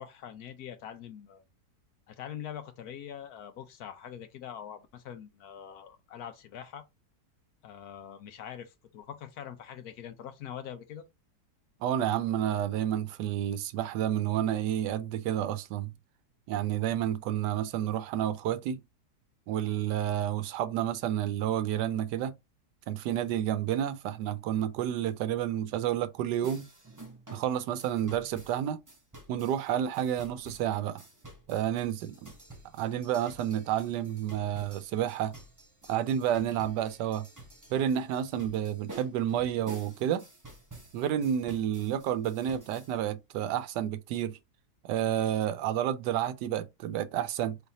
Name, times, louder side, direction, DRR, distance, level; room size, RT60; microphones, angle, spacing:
voice 1, 0.0-1.4 2.1-6.8 7.6-11.0, left 9 dB, 70° left, 1.2 m, -43 dB
voice 2, 11.8-15.9 16.5-18.8 19.5-22.3 22.9-26.6 27.3-28.8 29.3-31.0 31.5-32.3 32.7-35.3 35.9-37.3 37.7-40.3 40.9-44.4 44.8-47.6, right 10 dB, 85° right, 1.2 m, -30 dB
sound 1, 26.4-43.0, right 2 dB, 15° right, 0.7 m, -51 dB
4.0 x 3.4 x 2.7 m
omnidirectional pair, 1.8 m